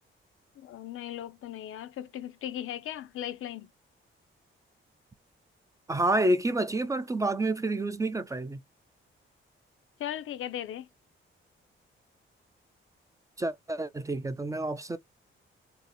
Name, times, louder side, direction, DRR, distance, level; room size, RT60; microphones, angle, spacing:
voice 1, 0.6-3.7 10.0-10.9, left 11 dB, 80° left, 0.4 m, -37 dB
voice 2, 5.9-8.6 13.4-15.0, right 2 dB, 15° right, 0.3 m, -28 dB
2.7 x 2.5 x 4.0 m
wide cardioid pair, 135°, 21 cm